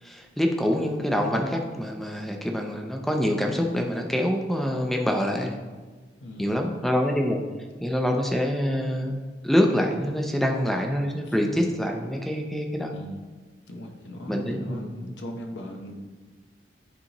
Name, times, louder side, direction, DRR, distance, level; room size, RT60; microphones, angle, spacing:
voice 1, 0.0-5.6 6.4-7.4 7.8-12.9 14.3-15.0, equal, ahead, 2 dB, 0.5 m, -26 dB
voice 2, 6.2-6.5 11.3-11.4 12.9-13.2 13.7-15.9, equal, 85° left, 2 dB, 0.8 m, -38 dB
10.0 x 4.1 x 2.9 m, 1.4 s
head